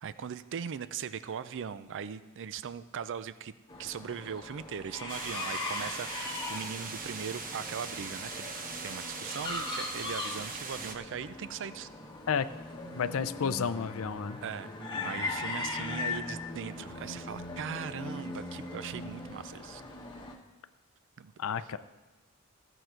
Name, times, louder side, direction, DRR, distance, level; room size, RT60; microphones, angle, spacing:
voice 1, 0.0-3.5 3.8-8.5 8.8-11.9 14.4-14.7 15.0-19.8 21.2-21.3, right 7 dB, 60° right, 14 dB, 0.4 m, -39 dB
sound 1, 3.7-20.4, left 3 dB, 20° left, 1.2 m, -39 dB
sound 2, 5.1-11.0, right 4 dB, 40° right, 0.9 m, -40 dB
voice 2, 12.9-14.4 21.4-21.8, left 6 dB, 65° left, 13 dB, 0.5 m, -31 dB
14.5 x 8.0 x 4.5 m, 1.2 s
head